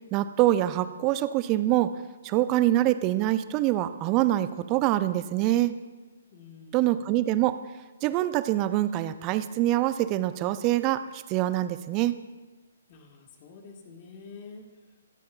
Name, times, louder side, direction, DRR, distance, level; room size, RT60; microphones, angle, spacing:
voice 1, 0.1-1.9 2.2-5.7 6.7-7.6 8.0-12.1, right 14 dB, 25° right, 13 dB, 0.5 m, -25 dB
voice 2, 6.3-7.2 12.9-14.8, left 4 dB, 35° left, 2 dB, 1.7 m, -48 dB
24.0 x 9.2 x 2.3 m, 1.3 s
figure-of-eight pair, 130°, 0 cm